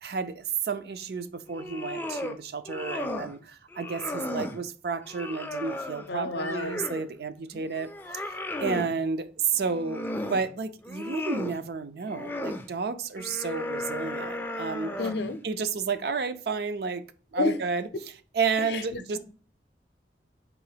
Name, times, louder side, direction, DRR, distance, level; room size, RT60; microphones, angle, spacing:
voice 1, 0.0-8.2 8.6-14.9 15.4-17.0 17.3-17.9 18.3-19.2, right 5 dB, 60° right, 0.4 m, -31 dB
sound 1, 1.5-2.4 2.7-3.3 3.7-4.6 5.0-7.1 7.5-8.9 9.6-10.5 10.8-11.6 12.1-12.7 13.2-15.3, left 1 dB, 10° left, 0.3 m, -35 dB
voice 2, 6.1-6.9 15.0-15.4 17.4-17.6 18.7-18.8, left 3 dB, 70° left, 0.5 m, -29 dB
3.7 x 2.9 x 4.8 m
head